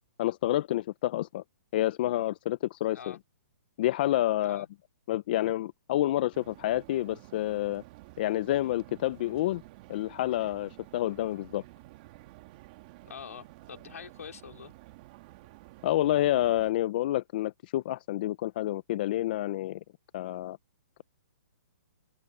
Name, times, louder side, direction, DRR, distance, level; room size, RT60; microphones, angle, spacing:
voice 1, 0.2-1.4 1.7-3.2 3.8-4.7 5.1-7.8 8.2-9.6 9.9-11.6 15.8-19.8 20.1-20.6, left 14 dB, 40° left, 0.5 m, -28 dB
sound 1, 6.3-16.7, right 19 dB, 35° right, 2.0 m, -52 dB
voice 2, 13.0-14.7, left 7 dB, 80° left, 3.9 m, -45 dB
hypercardioid pair, 160°, 8 cm